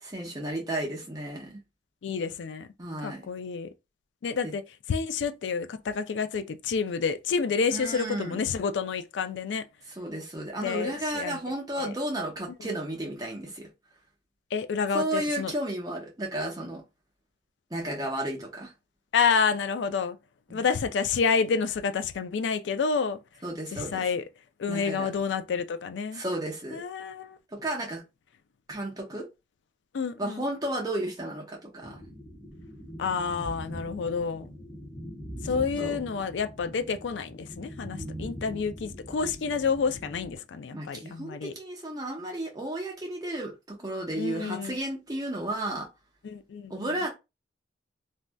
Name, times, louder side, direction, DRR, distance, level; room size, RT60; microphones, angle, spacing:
voice 1, 0.0-1.6 2.8-3.3 4.4-4.5 7.7-8.4 10.0-13.7 14.9-16.8 17.7-18.7 20.5-20.6 23.4-24.1 24.7-25.1 26.1-26.8 27.5-28.0 28.7-29.3 30.2-32.0 35.8-36.0 37.9-38.4 40.7-45.9 46.7-47.1, right 1 dB, 20° right, 0.8 m, -33 dB
voice 2, 2.0-2.7 3.0-3.7 4.2-4.6 4.9-9.6 10.6-11.4 11.8-11.9 14.5-15.5 19.1-20.2 20.5-23.2 23.7-24.2 24.6-26.2 26.7-27.4 29.9-30.5 33.0-34.5 35.4-41.5 44.2-44.8 46.2-47.0, left 5 dB, 80° left, 0.4 m, -29 dB
sound 1, 31.8-40.4, equal, 15° left, 1.1 m, -42 dB
3.2 x 2.6 x 2.2 m
head